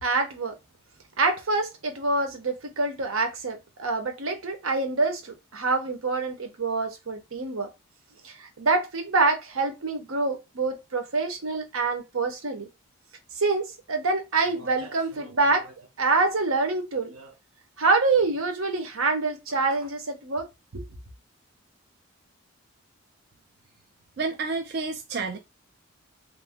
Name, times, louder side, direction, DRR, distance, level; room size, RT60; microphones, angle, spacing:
voice 1, 0.0-0.5 1.2-7.7 8.2-12.7 13.4-17.3 17.8-20.4 20.7-20.8, right 3 dB, 80° right, 0.9 m, -26 dB
voice 2, 24.2-25.4, right 4 dB, 50° right, 0.4 m, -30 dB
3.1 x 2.2 x 3.6 m
head